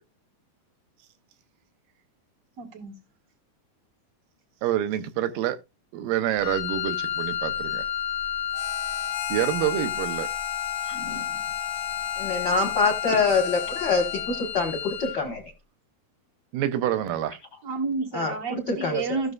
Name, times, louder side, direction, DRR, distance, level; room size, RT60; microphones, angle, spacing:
voice 1, 2.6-3.0 11.0-11.4 12.3-12.4 17.6-19.3, right 4 dB, 50° right, 0.9 m, -31 dB
voice 2, 4.6-5.6 5.9-7.8 9.3-10.3 16.5-17.4, right 11 dB, 80° right, 2.4 m, -27 dB
Wind instrument woodwind instrument, 6.4-15.3, left 9 dB, 65° left, 1.7 m, -31 dB
Harmonica, 8.5-14.5, left 13 dB, 90° left, 2.5 m, -37 dB
voice 3, 10.9-11.3 12.2-15.4 18.1-19.2, left 4 dB, 50° left, 1.2 m, -26 dB
16.0 x 6.3 x 2.4 m
omnidirectional pair, 4.1 m